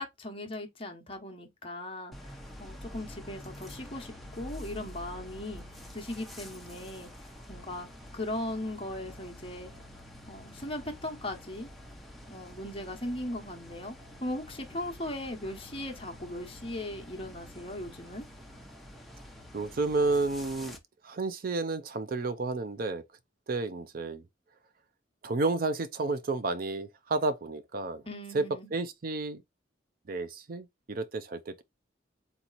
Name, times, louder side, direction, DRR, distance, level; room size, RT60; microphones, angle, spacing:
voice 1, 0.0-2.3 2.6-5.6 5.9-7.1 7.5-7.9 8.1-9.7 10.3-11.7 12.3-18.2 28.1-28.7, left 1 dB, 30° left, 1.0 m, -38 dB
sound 1, 2.1-20.8, left 1 dB, ahead, 0.8 m, -47 dB
voice 2, 19.5-20.8 21.0-23.0 23.5-24.2 25.2-28.0 28.3-28.4 28.7-29.4 30.1-31.6, right 3 dB, 50° right, 0.5 m, -31 dB
4.0 x 2.9 x 4.0 m
head